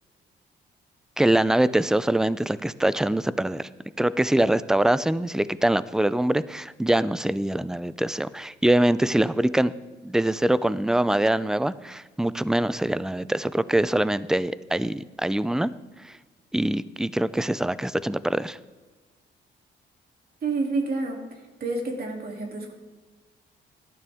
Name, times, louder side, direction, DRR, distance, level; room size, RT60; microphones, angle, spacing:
voice 1, 1.2-3.7 4.0-9.7 10.0-15.7 16.5-18.6, right 1 dB, 5° right, 17 dB, 0.4 m, -23 dB
voice 2, 20.4-21.2 21.6-22.7, right 3 dB, 50° right, 1 dB, 2.9 m, -28 dB
17.5 x 12.5 x 3.6 m, 1.3 s
cardioid pair, 90°, 20 cm